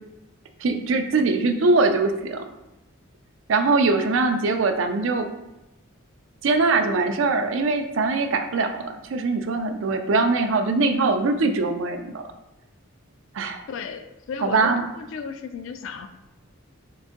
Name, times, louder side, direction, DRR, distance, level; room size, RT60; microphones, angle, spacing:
voice 1, 0.6-2.4 3.5-5.3 6.4-12.3 13.3-13.6 14.4-14.8, right 3 dB, 60° right, 6 dB, 0.4 m, -22 dB
voice 2, 13.7-16.1, left 5 dB, 65° left, 9 dB, 0.3 m, -34 dB
3.8 x 2.5 x 3.6 m, 0.96 s
head